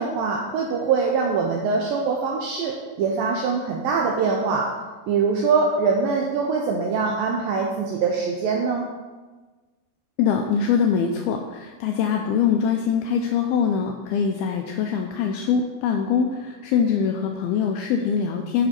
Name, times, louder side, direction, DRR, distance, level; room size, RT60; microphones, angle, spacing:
voice 1, 0.0-4.7 5.1-8.8, right 5 dB, 85° right, 0 dB, 2.1 m, -23 dB
voice 2, 10.2-18.7, left 7 dB, 85° left, 3 dB, 2.2 m, -23 dB
9.3 x 5.8 x 4.3 m, 1.3 s
omnidirectional pair, 4.9 m